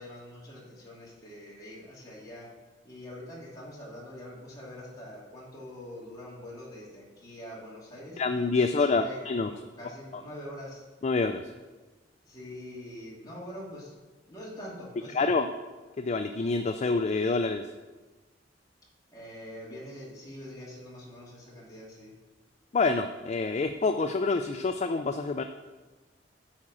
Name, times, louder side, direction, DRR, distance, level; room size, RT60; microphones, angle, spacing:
voice 1, 0.0-2.5 2.8-8.2 8.6-10.8 12.2-13.9 14.3-15.3 19.1-22.1, left 1 dB, 20° left, -6 dB, 2.8 m, -44 dB
voice 2, 8.2-9.5 11.0-11.4 15.1-15.5 16.0-17.7 22.7-25.4, left 3 dB, 35° left, 7 dB, 0.4 m, -27 dB
8.7 x 4.9 x 7.5 m, 1.2 s
head